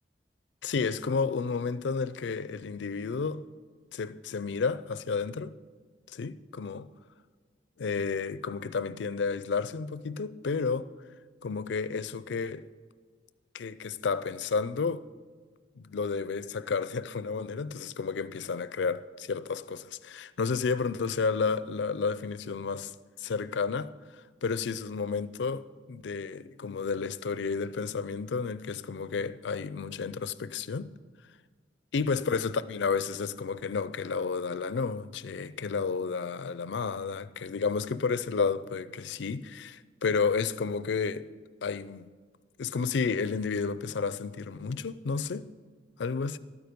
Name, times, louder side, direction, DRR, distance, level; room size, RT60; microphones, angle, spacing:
voice 1, 0.6-3.4 3.9-5.5 6.1-6.9 7.8-10.9 11.4-12.6 13.5-15.0 15.8-22.9 23.2-23.9 24.4-30.9 31.9-41.2 41.6-42.1 42.6-45.5 46.0-46.4, left 5 dB, 75° left, 0.4 m, -31 dB
12.5 x 9.3 x 5.2 m
head